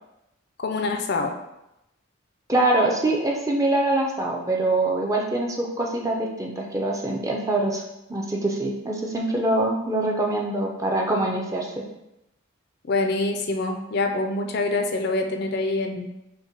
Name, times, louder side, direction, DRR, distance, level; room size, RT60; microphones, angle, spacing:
voice 1, 0.6-1.4 12.9-16.1, left 3 dB, 50° left, 4 dB, 0.4 m, -25 dB
voice 2, 2.5-7.8 8.1-11.8, right 2 dB, 15° right, -1 dB, 0.5 m, -24 dB
5.4 x 2.2 x 4.5 m, 0.89 s
head